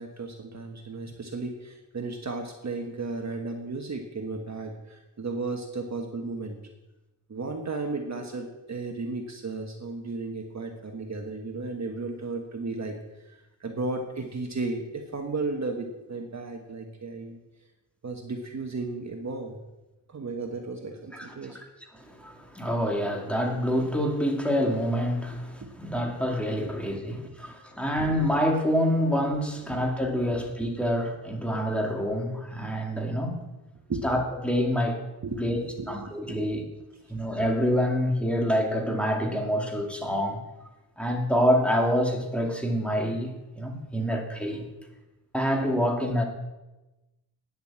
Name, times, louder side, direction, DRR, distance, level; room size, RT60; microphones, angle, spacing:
voice 1, 0.0-6.6 7.3-12.9 13.2-17.4 18.0-19.6 20.1-21.6 25.6-25.7 26.6-27.0 29.7-29.8 33.9-34.0 35.2-36.4, right 3 dB, 40° right, 3 dB, 1.4 m, -34 dB
voice 2, 21.9-33.4 34.0-35.0 35.4-36.6 37.1-40.4 41.0-44.7 45.3-46.2, equal, 5° left, 0 dB, 2.5 m, -27 dB
9.9 x 8.0 x 7.5 m, 1.0 s
cardioid pair, 85°, 41 cm